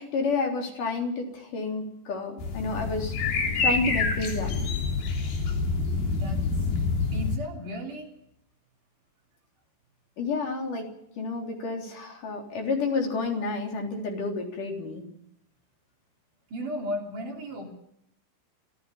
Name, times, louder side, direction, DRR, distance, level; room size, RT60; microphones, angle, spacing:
voice 1, 0.0-4.5 10.2-10.9 11.2-15.0, left 3 dB, 60° left, 1 dB, 5.1 m, -30 dB
sound 1, 2.4-7.4, left 4 dB, 80° left, 5.2 m, -27 dB
voice 2, 7.1-8.1 16.5-17.7, left 1 dB, 60° right, 1 dB, 4.8 m, -35 dB
26.0 x 15.5 x 7.2 m, 0.76 s
omnidirectional pair, 4.3 m